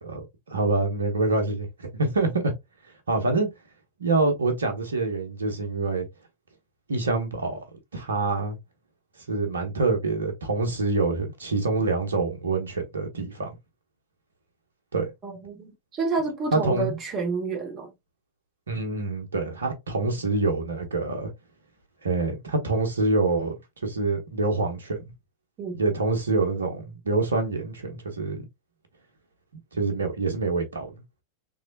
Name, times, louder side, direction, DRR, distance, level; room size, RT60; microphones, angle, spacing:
voice 1, 0.0-2.5 3.1-3.5 4.0-6.1 6.9-7.6 7.9-8.6 9.3-13.5 14.9-15.0 16.5-17.0 18.7-21.3 22.0-23.5 23.8-25.1 25.7-28.4 29.7-30.9, right 3 dB, 70° right, 1.0 m, -26 dB
voice 2, 15.2-17.9 25.6-25.7, right 4 dB, 30° right, 1.2 m, -29 dB
3.5 x 3.2 x 2.6 m
figure-of-eight pair, 90°, 0 cm